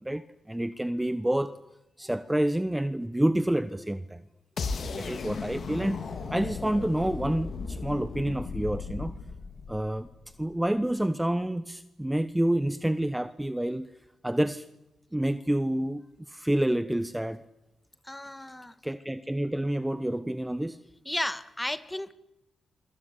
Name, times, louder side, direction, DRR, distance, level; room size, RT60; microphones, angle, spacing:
voice 1, 0.0-1.5 2.0-4.2 5.0-6.0 6.3-9.1 9.7-10.1 10.4-13.9 14.2-14.7 15.1-16.0 16.3-17.4 18.8-20.8, right 1 dB, 10° right, 1.1 m, -28 dB
sound 1, 4.6-10.5, left 4 dB, 65° left, 3.5 m, -36 dB
voice 2, 18.0-18.7 21.1-22.1, left 1 dB, 15° left, 2.0 m, -33 dB
27.5 x 25.5 x 8.4 m
cardioid pair, 65°, 0 cm